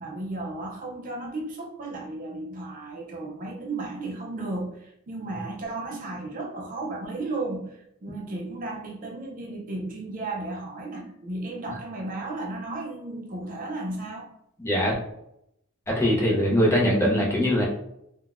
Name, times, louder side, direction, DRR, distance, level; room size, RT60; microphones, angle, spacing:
voice 1, 0.0-14.3, right 2 dB, 35° right, -1 dB, 0.4 m, -34 dB
voice 2, 14.6-14.9 15.9-17.7, equal, 10° left, -3 dB, 0.6 m, -22 dB
3.6 x 2.2 x 2.4 m, 0.77 s
head